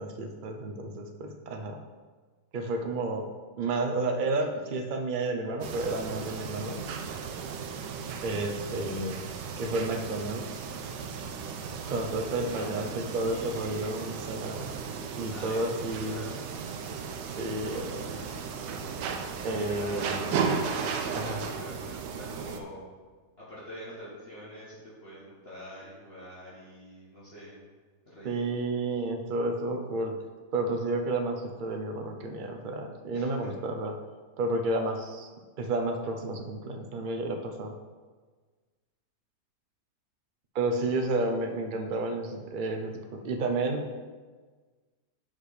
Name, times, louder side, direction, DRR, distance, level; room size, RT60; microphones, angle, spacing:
voice 1, 0.0-1.8 2.5-3.3 3.6-6.8 8.2-9.2 9.6-10.5 11.9-14.7 15.2-16.2 17.4-17.9 19.4-20.4 21.1-21.4 28.2-30.1 30.5-33.9 34.4-35.3 35.6-37.7 40.5-43.9, right 2 dB, 50° right, 3 dB, 0.5 m, -31 dB
sound 1, 5.6-22.6, right 5 dB, 80° right, 1.3 m, -35 dB
voice 2, 12.6-14.2 15.3-16.5 17.6-18.4 19.5-20.3 20.8-22.9 23.4-27.6 28.1-28.4 33.1-33.3, left 1 dB, 35° left, -10 dB, 1.9 m, -45 dB
5.7 x 5.0 x 6.5 m, 1.4 s
omnidirectional pair, 1.9 m